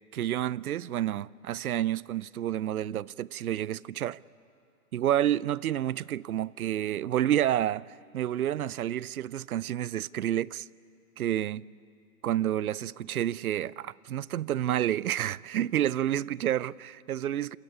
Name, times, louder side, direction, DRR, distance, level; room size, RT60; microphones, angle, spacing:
voice 1, 0.1-4.2 4.9-10.7 11.2-11.6 12.2-17.6, right 11 dB, 70° right, 0.6 m, -29 dB
27.0 x 19.5 x 9.9 m
hypercardioid pair, 170°, 45 cm